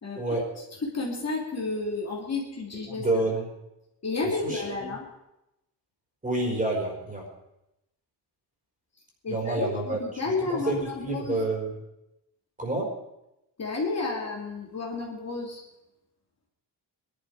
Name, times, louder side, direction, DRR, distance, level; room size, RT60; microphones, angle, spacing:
voice 1, 0.2-0.5 2.9-3.5 4.2-4.9 6.2-7.3 9.3-10.0 10.5-11.7 12.6-13.0, right 2 dB, 20° right, -1 dB, 4.5 m, -28 dB
voice 2, 0.8-3.0 4.0-5.1 9.2-11.4 13.6-15.6, left 3 dB, 35° left, -2 dB, 2.9 m, -31 dB
21.5 x 11.5 x 4.9 m, 0.89 s
wide cardioid pair, 175°, 43 cm